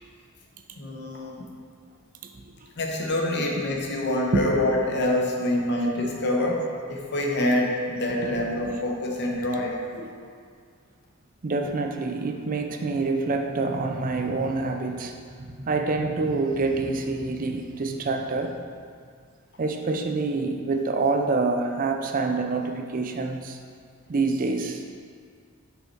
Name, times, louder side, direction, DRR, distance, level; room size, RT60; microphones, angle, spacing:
voice 1, 0.8-1.5 2.8-9.8, left 1 dB, 50° left, 0 dB, 0.8 m, -26 dB
voice 2, 8.2-8.8 9.6-9.7 10.0-10.2 11.4-18.6 19.6-23.6 24.1-24.8, right 3 dB, 40° right, 5 dB, 0.4 m, -27 dB
5.6 x 4.1 x 4.4 m, 2.1 s
head